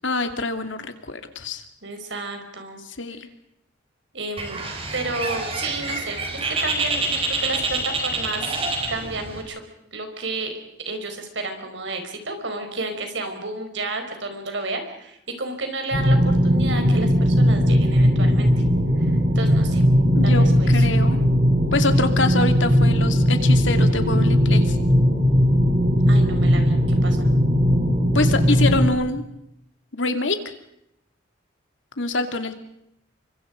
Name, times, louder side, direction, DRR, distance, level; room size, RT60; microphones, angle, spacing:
voice 1, 0.0-1.6 2.8-3.3 20.1-21.2 21.7-24.8 28.1-29.2 29.9-30.4 32.0-32.5, left 2 dB, 75° left, 7 dB, 2.6 m, -25 dB
voice 2, 1.8-2.8 4.1-4.6 4.9-8.5 8.9-9.6 9.9-10.5 10.9-18.5 19.0-19.9 20.2-20.9 26.1-27.3, right 2 dB, 70° right, 6 dB, 5.0 m, -31 dB
Bird, 4.4-9.4, right 2 dB, 30° right, 4.8 m, -27 dB
sound 1, 15.9-28.9, equal, 50° right, 6.1 m, -18 dB
30.0 x 24.5 x 5.2 m, 0.77 s
head